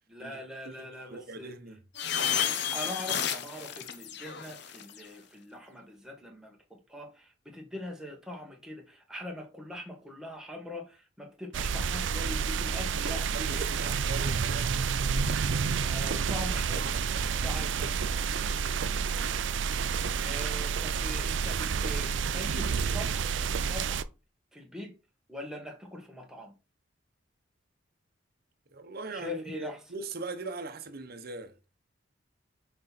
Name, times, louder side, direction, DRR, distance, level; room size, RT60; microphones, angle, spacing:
voice 1, 0.1-1.5 2.7-14.4 15.9-16.9 17.4-18.1 18.6-19.0 20.2-24.1 24.5-24.9 25.3-26.5 29.1-29.8, left 1 dB, 5° right, 1.7 m, -42 dB
voice 2, 1.1-1.8 13.3-14.7 16.7-17.4 28.7-31.6, right 3 dB, 55° right, 0.9 m, -40 dB
sound 1, 2.0-5.0, left 8 dB, 65° left, 0.9 m, -31 dB
sound 2, 11.5-24.0, right 6 dB, 70° right, 0.5 m, -29 dB
6.4 x 4.4 x 4.2 m
head